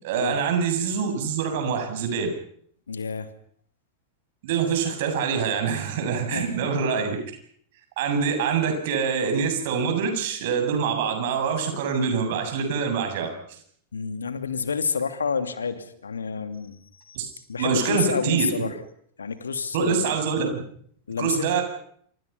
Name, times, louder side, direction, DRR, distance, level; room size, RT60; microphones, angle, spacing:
voice 1, 0.0-2.3 4.4-7.2 8.0-13.6 17.1-17.3 17.6-18.5 19.7-20.6 21.2-21.6, right 6 dB, 50° right, 5 dB, 7.7 m, -25 dB
voice 2, 2.9-3.3 6.3-6.6 13.9-16.8 17.1-17.2 17.5-18.7 19.2-20.1 21.1-21.6, left 5 dB, 70° left, 10 dB, 2.7 m, -29 dB
28.0 x 27.0 x 5.8 m, 0.64 s
figure-of-eight pair, 90°, 0 cm